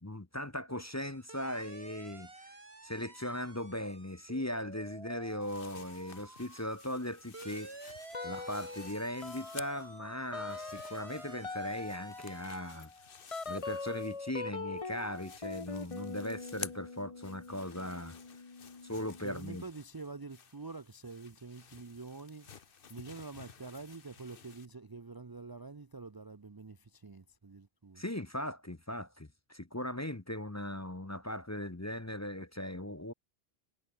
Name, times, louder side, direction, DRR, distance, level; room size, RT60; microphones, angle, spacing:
voice 1, 0.0-2.6 2.8-7.7 8.2-12.9 13.5-18.2 18.8-19.6 28.0-33.1, left 1 dB, 15° left, 0.9 m, -39 dB
sound 1, 0.9-12.8, right 3 dB, 70° right, 3.6 m, -51 dB
sound 2, 5.4-10.0 10.3-14.5 14.8-24.7, left 6 dB, 60° left, 1.2 m, -53 dB
sound 3, 8.1-8.9 9.2-19.6, left 4 dB, 30° left, 1.3 m, -43 dB
voice 2, 19.2-22.5 22.9-28.0, right 3 dB, 25° right, 0.6 m, -46 dB
omnidirectional pair, 1.1 m